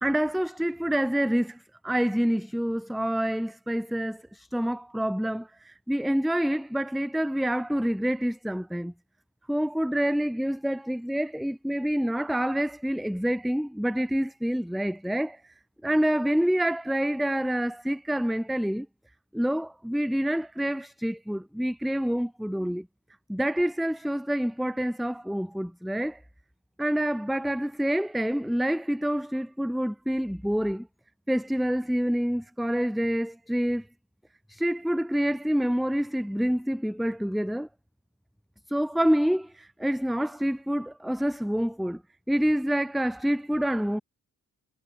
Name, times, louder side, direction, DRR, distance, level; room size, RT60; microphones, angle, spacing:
voice 1, 0.0-8.9 9.5-15.5 15.8-18.9 19.3-22.9 23.3-26.2 26.8-30.9 31.3-33.9 34.5-37.7 38.7-42.0 42.3-44.0, equal, ahead, 0.7 m, -27 dB
wide cardioid pair, 145°, 36 cm